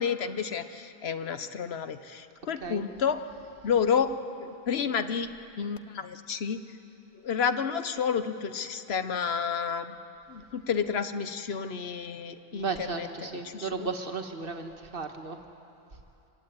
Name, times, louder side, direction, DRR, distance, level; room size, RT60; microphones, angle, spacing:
voice 1, 0.0-3.2 3.6-5.3 5.6-6.6 7.2-10.0 10.3-13.9, left 6 dB, 75° left, 10 dB, 1.1 m, -30 dB
voice 2, 12.5-15.4, right 4 dB, 60° right, 5 dB, 1.7 m, -35 dB
24.5 x 16.0 x 9.6 m, 2.8 s
omnidirectional pair, 1.1 m